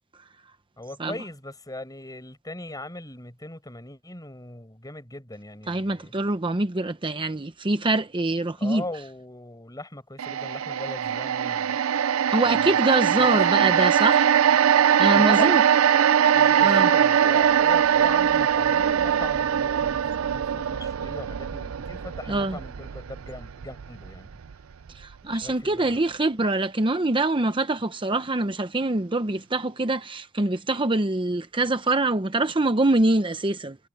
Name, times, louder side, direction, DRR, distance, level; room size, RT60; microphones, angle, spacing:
voice 1, 0.8-6.1 8.6-11.8 12.4-12.7 13.2-13.4 13.7-13.8 15.1-15.6 15.9-24.3 25.3-26.0, left 2 dB, 20° left, 7.4 m, -39 dB
voice 2, 5.7-8.8 12.3-14.3 15.0-15.6 16.6-16.9 22.3-22.6 24.9-33.8, right 2 dB, 25° right, 0.8 m, -24 dB
sound 1, 10.2-24.5 24.9-25.0, right 8 dB, 80° right, 0.5 m, -21 dB
head